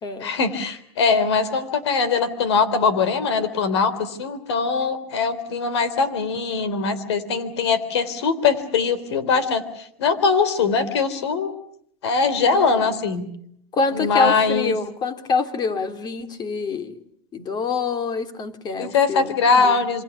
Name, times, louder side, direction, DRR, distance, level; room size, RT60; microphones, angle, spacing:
voice 1, 0.2-11.5 12.0-13.3 13.9-14.8 18.8-20.0, left 5 dB, 85° left, 15 dB, 3.4 m, -21 dB
voice 2, 13.7-17.0 17.3-19.8, left 4 dB, 30° left, 8 dB, 2.9 m, -26 dB
27.5 x 24.5 x 7.1 m, 0.69 s
supercardioid pair, 115°, 14 cm